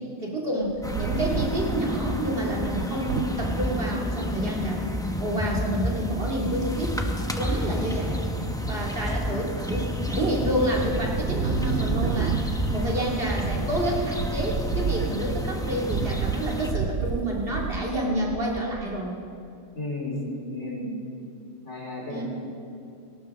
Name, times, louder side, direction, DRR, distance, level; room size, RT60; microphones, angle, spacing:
voice 1, 0.2-4.9 5.2-7.0 7.3-8.2 8.7-19.2 22.1-22.2, right 1 dB, 55° right, -3 dB, 2.8 m, -29 dB
Wind, 0.6-3.7 4.3-4.4 4.6-4.9 6.4-7.0 7.5-8.0 8.3-9.5 10.0-10.4 10.7-18.9, right 6 dB, 70° right, 0.9 m, -31 dB
sound 1, 0.8-16.7, equal, 5° left, 0.9 m, -30 dB
voice 2, 19.7-20.9 21.6-22.2, left 1 dB, 70° left, -4 dB, 4.3 m, -33 dB
18.5 x 18.0 x 3.7 m, 2.7 s
omnidirectional pair, 1.2 m